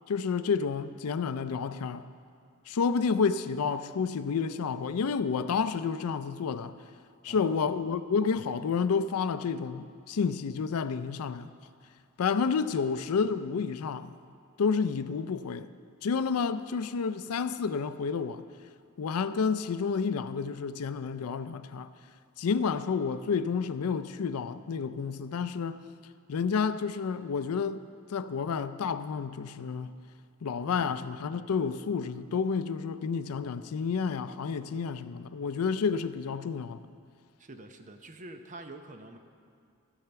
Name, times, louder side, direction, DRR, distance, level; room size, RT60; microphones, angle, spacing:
voice 1, 0.1-2.1 2.7-6.7 7.2-11.5 12.2-14.2 14.6-15.7 16.0-18.4 19.0-21.9 22.4-25.8 26.3-27.8 28.1-29.9 30.4-36.8, left 5 dB, 80° left, 0.4 m, -30 dB
voice 2, 7.3-7.8 30.7-30.9 37.4-39.2, right 2 dB, 35° right, 0.7 m, -46 dB
15.5 x 5.7 x 6.8 m
head